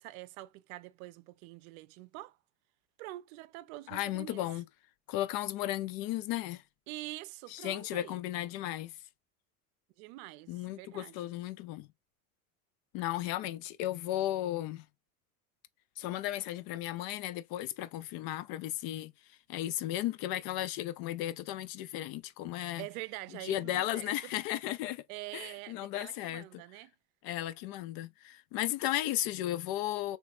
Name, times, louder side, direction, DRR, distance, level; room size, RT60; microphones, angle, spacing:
voice 1, 0.0-2.4 3.0-4.5 6.9-8.2 10.0-11.3 22.8-24.3 25.1-26.9, right 18 dB, 70° right, 0.6 m, -45 dB
voice 2, 3.9-4.6 5.1-6.6 7.5-8.9 10.5-11.9 12.9-14.9 16.0-19.1 19.5-22.9 23.4-25.0 25.3-26.6 27.2-30.2, left 14 dB, 55° left, 0.5 m, -35 dB
3.1 x 3.1 x 2.4 m
supercardioid pair, 95°, 44 cm